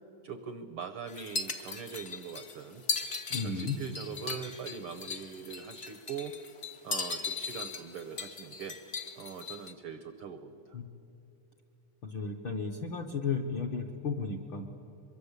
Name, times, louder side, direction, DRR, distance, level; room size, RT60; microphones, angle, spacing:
voice 1, 0.2-2.8 3.4-6.3 6.8-8.8 9.2-10.8, right 6 dB, 80° right, 9 dB, 1.2 m, -42 dB
sound 1, 1.1-9.7, left 4 dB, 85° left, 0.6 m, -38 dB
voice 2, 3.3-3.8 10.7-10.9 12.0-14.7, left 5 dB, 70° left, 2 dB, 1.2 m, -34 dB
23.5 x 23.0 x 8.1 m, 2.9 s
omnidirectional pair, 3.6 m